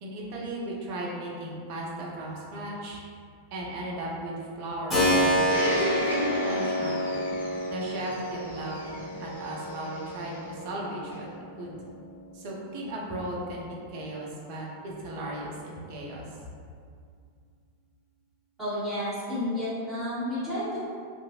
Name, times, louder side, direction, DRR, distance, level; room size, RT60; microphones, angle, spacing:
voice 1, 0.0-3.0 3.5-7.2 7.7-11.3 11.5-11.8 12.3-16.3, right 1 dB, 45° right, -2 dB, 0.6 m, -36 dB
Keyboard (musical), 4.9-13.5, equal, 20° left, 1.3 m, -30 dB
Domestic sounds home sounds, 5.5-10.3 11.1-11.2, left 1 dB, 80° left, 0.7 m, -35 dB
voice 2, 18.6-20.8, left 1 dB, 5° right, -16 dB, 1.5 m, -31 dB
2.7 x 2.5 x 2.9 m, 2.2 s
figure-of-eight pair, 90°, 0 cm